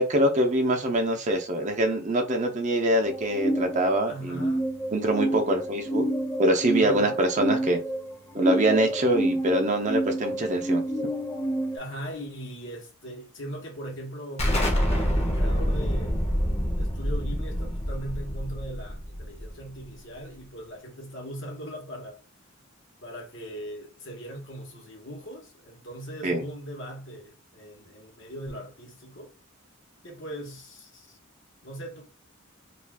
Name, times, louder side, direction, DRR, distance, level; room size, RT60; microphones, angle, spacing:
voice 1, 0.0-4.5 4.9-6.0 6.4-7.8 8.3-10.8 26.2-26.4, right 1 dB, 40° right, 0.6 m, -24 dB
sound 1, 3.1-11.8, right 1 dB, 10° left, 0.4 m, -29 dB
voice 2, 4.1-4.6 6.8-7.2 11.7-16.2 16.8-22.2 23.0-29.3 30.0-31.2 31.6-32.1, right 1 dB, 65° left, 1.0 m, -39 dB
Explosion, 14.4-19.8, equal, 30° left, 0.8 m, -26 dB
2.4 x 2.4 x 3.4 m
head